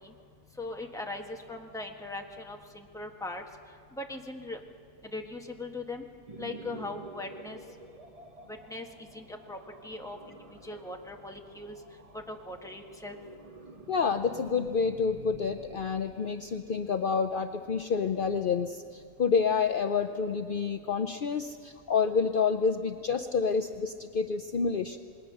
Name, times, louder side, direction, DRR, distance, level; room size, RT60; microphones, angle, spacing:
voice 1, 0.6-3.4 3.9-4.6 5.1-6.1 6.4-7.6 8.5-8.9 9.1-9.6 9.8-10.4 10.6-11.8 12.1-13.2, left 2 dB, ahead, 2 dB, 1.2 m, -39 dB
sound 1, 6.3-18.4, right 3 dB, 30° right, 0.8 m, -50 dB
voice 2, 13.9-25.0, left 5 dB, 60° left, 7 dB, 0.5 m, -28 dB
27.5 x 20.5 x 6.4 m, 2.3 s
omnidirectional pair, 1.7 m